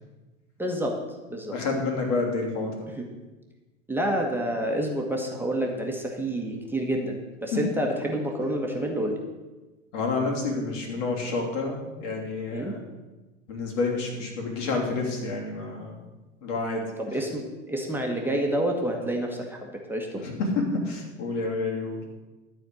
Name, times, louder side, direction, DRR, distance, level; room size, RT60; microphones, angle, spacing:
voice 1, 0.6-1.0 1.3-1.5 3.0-3.1 3.9-9.2 12.5-12.7 17.0-20.2, right 1 dB, 5° right, 0 dB, 1.4 m, -28 dB
voice 2, 1.5-2.7 7.5-7.6 9.9-12.8 13.5-16.0 16.4-16.8 20.2-22.0, left 3 dB, 65° left, 0 dB, 3.1 m, -29 dB
12.5 x 4.5 x 7.6 m, 1.2 s
hypercardioid pair, 100°, 39 cm